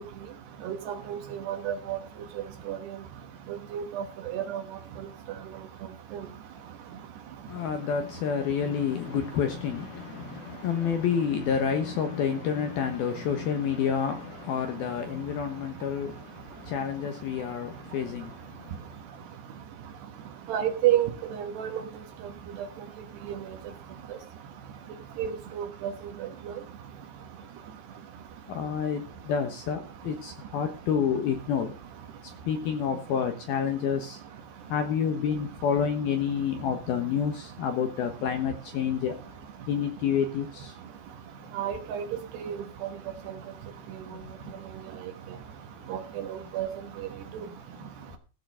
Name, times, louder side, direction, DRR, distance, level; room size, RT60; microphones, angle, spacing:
voice 1, 0.6-2.0 2.7-2.8 3.7-4.0 4.3-4.6 20.5-21.8 23.3-23.4 25.2-25.9 41.5-42.0 42.4-42.6 45.9-46.0 46.3-46.7, right 11 dB, 70° right, 3.0 m, -29 dB
voice 2, 7.5-19.0 28.5-31.8 32.2-34.2 34.7-39.2 39.7-40.8 44.1-44.6 47.4-47.6, left 7 dB, 70° left, 2.5 m, -29 dB
15.5 x 6.7 x 6.4 m
omnidirectional pair, 5.8 m